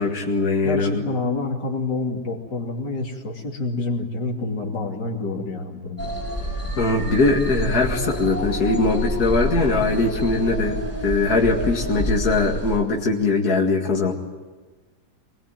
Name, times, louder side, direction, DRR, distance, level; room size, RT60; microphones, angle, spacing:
voice 1, 0.0-1.0 6.8-14.1, left 3 dB, 60° left, -1 dB, 2.6 m, -21 dB
voice 2, 0.6-6.2, left 3 dB, 80° left, 1 dB, 3.4 m, -28 dB
sound 1, 6.0-12.8, equal, 10° right, 6.0 m, -28 dB
24.0 x 21.0 x 9.1 m, 1.3 s
omnidirectional pair, 1.9 m